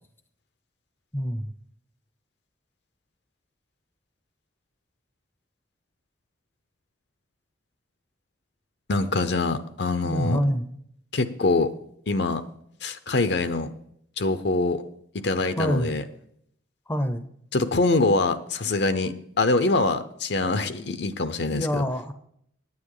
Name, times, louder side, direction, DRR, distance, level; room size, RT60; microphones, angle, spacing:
voice 1, 1.1-1.5 10.0-10.7 15.6-15.9 16.9-17.3 21.5-22.1, equal, 10° left, 9 dB, 0.6 m, -26 dB
voice 2, 8.9-10.4 11.1-11.7 12.1-12.4 12.8-13.7 14.2-14.8 15.1-16.0 17.5-21.8, left 3 dB, 60° left, 11 dB, 0.7 m, -24 dB
9.6 x 9.2 x 4.8 m, 0.69 s
head